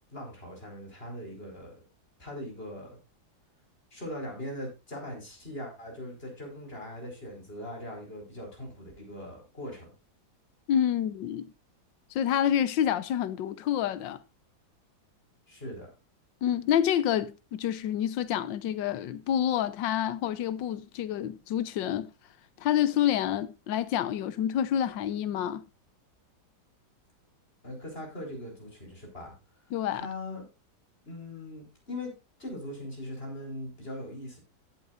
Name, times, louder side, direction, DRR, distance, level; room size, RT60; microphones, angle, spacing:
voice 1, 0.1-1.7 2.2-3.0 3.9-9.9 15.5-15.9 27.6-29.3 29.9-30.5 31.1-32.1 32.4-34.4, left 1 dB, 30° left, 5.3 m, -40 dB
voice 2, 10.7-11.5 12.1-14.2 16.4-22.1 22.6-25.6 29.7-30.0, left 10 dB, 70° left, 1.5 m, -28 dB
15.5 x 8.5 x 2.5 m
omnidirectional pair, 2.1 m